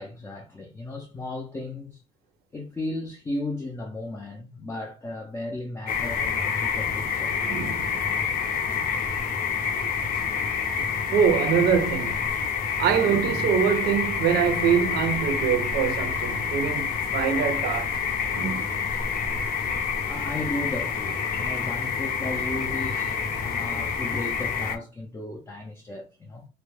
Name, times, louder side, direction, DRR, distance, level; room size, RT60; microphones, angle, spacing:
voice 1, 0.0-2.0 2.5-7.4 20.0-26.5, left 2 dB, 15° left, 0.4 m, -35 dB
sound 1, 5.9-24.8, left 6 dB, 60° left, 0.6 m, -28 dB
voice 2, 7.4-8.0 9.8-9.9 11.1-12.3 12.8-18.0 18.3-18.9, right 8 dB, 70° right, 0.5 m, -24 dB
2.2 x 2.0 x 3.1 m
cardioid pair, 110°, 17 cm